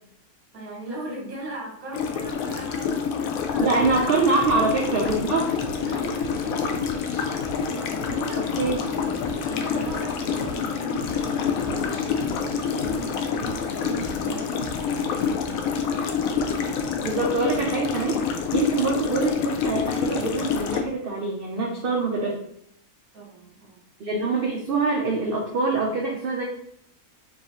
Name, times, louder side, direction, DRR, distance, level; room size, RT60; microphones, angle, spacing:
voice 1, 0.5-3.8 4.3-4.7 5.9-6.9 7.7-14.6 15.1-15.8 23.1-23.8, right 2 dB, 75° right, -3 dB, 1.9 m, -39 dB
sound 1, 1.9-20.8, left 6 dB, 75° left, 1.0 m, -27 dB
voice 2, 3.6-5.6 8.4-8.8 17.0-18.2 18.5-22.4 24.0-26.4, right 3 dB, 55° right, -1 dB, 0.6 m, -24 dB
sound 2, 3.8-15.3, left 3 dB, 60° left, 0.3 m, -40 dB
4.7 x 2.6 x 3.0 m, 0.71 s
omnidirectional pair, 1.5 m